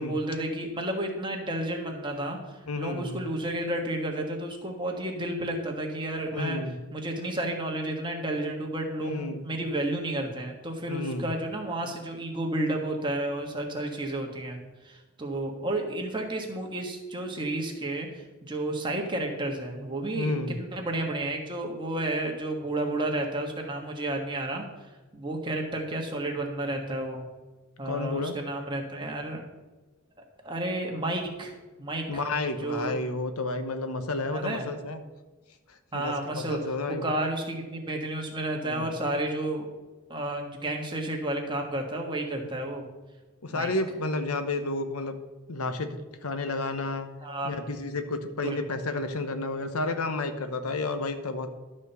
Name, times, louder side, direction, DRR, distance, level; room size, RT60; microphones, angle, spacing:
voice 1, 0.0-2.4 2.8-6.6 6.9-24.6 25.1-27.2 27.8-29.4 30.4-31.5 31.8-32.2 32.6-33.0 34.3-34.7 35.9-39.7 40.1-42.9 43.5-43.7 47.2-47.5 48.4-48.6, right 1 dB, 20° right, 1 dB, 1.4 m, -31 dB
voice 2, 2.7-3.2 6.3-6.8 9.0-9.4 10.9-11.3 20.1-20.6 27.8-28.3 32.1-35.0 35.9-37.1 38.6-38.9 42.7-42.8 43.4-45.1 45.5-47.1 47.4-51.5, left 2 dB, 90° left, 9 dB, 0.9 m, -31 dB
12.0 x 4.3 x 6.7 m, 1.2 s
head